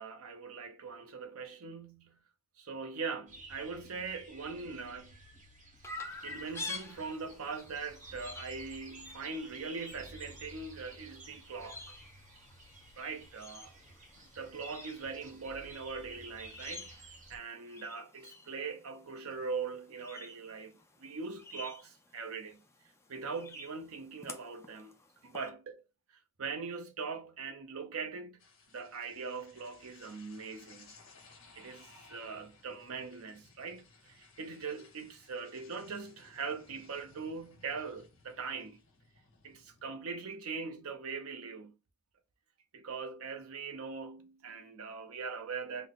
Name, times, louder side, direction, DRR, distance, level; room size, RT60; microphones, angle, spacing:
voice 1, 0.0-2.2 2.6-5.2 6.2-11.9 13.0-13.7 14.2-20.7 21.0-22.6 23.1-25.0 25.2-25.8 26.4-28.4 28.7-30.9 31.6-38.8 39.4-41.8 42.7-45.9, right 5 dB, 80° right, 0.7 m, -41 dB
sound 1, 3.3-17.4, right 2 dB, 35° right, 0.9 m, -53 dB
Chirp tweet, 5.8-25.5, left 3 dB, 15° left, 0.5 m, -50 dB
sound 2, 28.4-39.9, left 4 dB, 65° left, 1.3 m, -60 dB
3.7 x 2.1 x 3.7 m
head